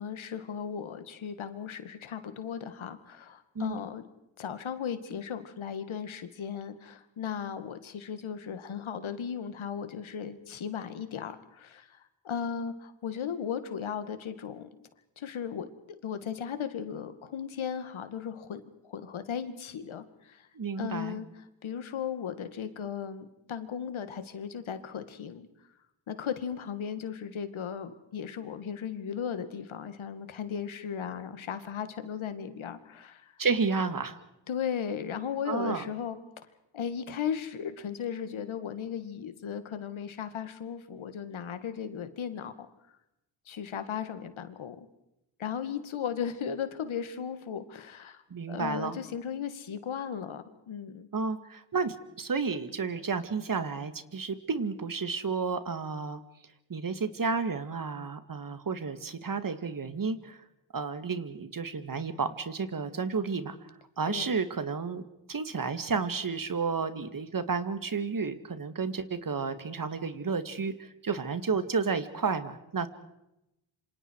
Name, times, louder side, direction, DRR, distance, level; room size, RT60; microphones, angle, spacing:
voice 1, 0.0-4.0 4.4-14.7 15.2-20.5 20.8-21.3 21.6-25.5 26.1-33.3 34.5-36.2 36.7-42.7 43.5-44.9 45.4-48.2 48.5-51.1 64.1-64.3, left 7 dB, 75° left, 10 dB, 2.1 m, -36 dB
voice 2, 20.5-21.2 33.4-34.2 35.5-35.9 48.3-49.0 51.1-56.2 56.7-60.4 60.7-63.7 64.0-65.0 65.3-72.9, right 5 dB, 45° right, 11 dB, 2.1 m, -31 dB
27.5 x 26.0 x 4.7 m, 0.87 s
cardioid pair, 75°, 48 cm